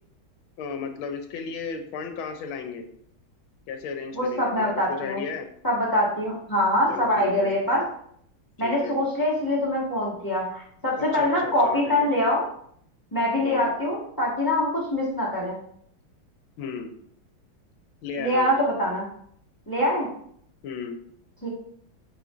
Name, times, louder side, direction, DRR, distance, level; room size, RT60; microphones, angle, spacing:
voice 1, 0.6-2.8 3.7-5.5 6.9-7.5 8.6-8.9 11.0-12.1 13.4-13.8 16.6-16.9 18.0-18.5 20.6-21.0, left 6 dB, 80° left, 6 dB, 1.6 m, -34 dB
voice 2, 4.1-5.2 5.6-7.8 8.6-12.4 13.1-15.6 18.2-19.0 19.7-20.1 21.4-21.5, left 1 dB, 10° left, -6 dB, 1.5 m, -24 dB
8.3 x 4.5 x 2.5 m, 0.65 s
omnidirectional pair, 2.3 m